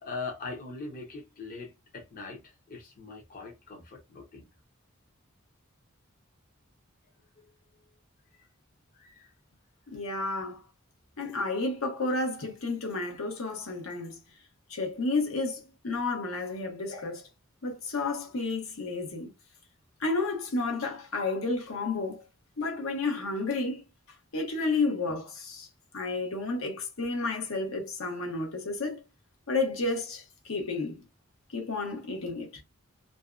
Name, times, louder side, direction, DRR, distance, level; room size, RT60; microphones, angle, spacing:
voice 1, 0.0-4.5 8.3-8.5 8.9-9.3, left 3 dB, 40° left, 0.5 m, -41 dB
voice 2, 9.9-10.6 11.2-14.2 14.7-17.2 17.6-19.3 20.0-22.2 22.6-23.8 24.3-25.7 25.9-29.0 29.5-31.0 31.5-32.6, left 3 dB, 85° left, 0.8 m, -31 dB
2.5 x 2.1 x 2.3 m
head